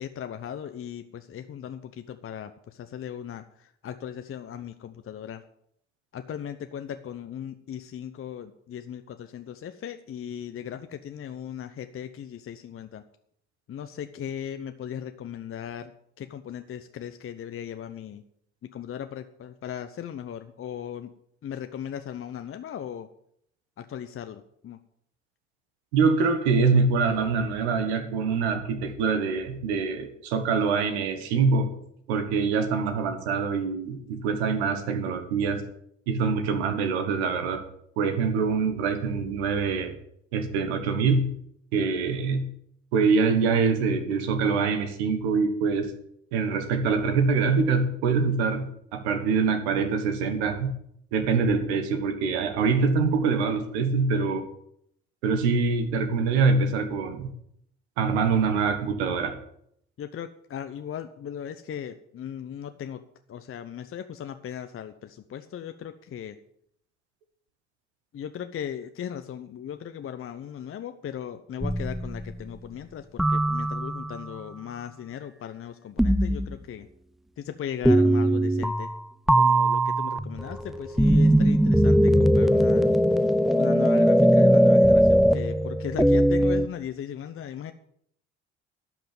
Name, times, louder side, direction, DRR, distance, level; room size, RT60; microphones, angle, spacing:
voice 1, 0.0-5.4 6.1-13.0 13.7-18.2 18.6-21.1 21.4-23.1 23.8-24.8 60.0-63.0 63.3-66.4 68.1-76.9 77.4-78.9 79.4-82.9 83.5-87.7, left 9 dB, 40° left, 9 dB, 0.9 m, -37 dB
voice 2, 25.9-31.7 32.1-35.6 36.1-37.6 38.0-39.9 40.3-41.3 41.7-42.5 42.9-45.9 46.3-50.7 51.1-54.4 55.2-57.3 58.0-59.4, right 5 dB, 75° right, 7 dB, 1.6 m, -24 dB
sound 1, 71.6-72.4 73.2-74.3 76.0-76.6 77.8-79.0 79.3-86.7, right 1 dB, ahead, 0.5 m, -20 dB
12.0 x 6.0 x 8.9 m, 0.71 s
hypercardioid pair, 55°, 33 cm